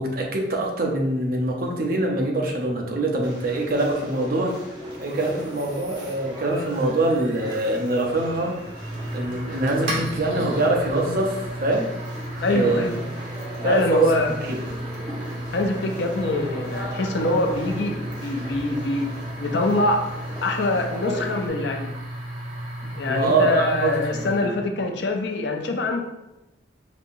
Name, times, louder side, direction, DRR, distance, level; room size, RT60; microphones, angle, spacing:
voice 1, 0.0-4.6 5.0-8.6 9.1-11.9 12.5-12.9 13.6-14.6 22.8-24.6, right 2 dB, 55° right, 1 dB, 0.7 m, -24 dB
sound 1, 3.2-21.5, equal, 25° right, 1.0 m, -38 dB
sound 2, 5.0-24.6, right 1 dB, 80° right, 1.5 m, -34 dB
voice 2, 12.4-13.0 13.6-14.3 15.5-20.1 20.4-21.9 23.0-26.0, left 2 dB, 70° left, 3 dB, 0.5 m, -24 dB
5.2 x 2.8 x 2.6 m, 0.96 s
head